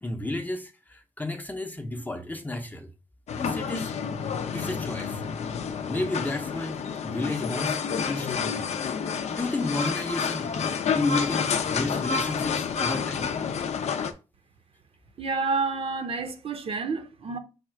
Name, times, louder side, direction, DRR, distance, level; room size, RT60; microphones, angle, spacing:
voice 1, 0.0-2.9 3.4-4.0 4.5-5.2 5.9-8.7 9.3-13.3, left 2 dB, 15° left, 0.6 m, -32 dB
sound 1, 3.3-14.1, left 6 dB, 70° left, 0.5 m, -29 dB
voice 2, 15.2-17.4, right 4 dB, 55° right, 0.7 m, -29 dB
4.9 x 2.3 x 4.4 m
cardioid pair, 95°, 12 cm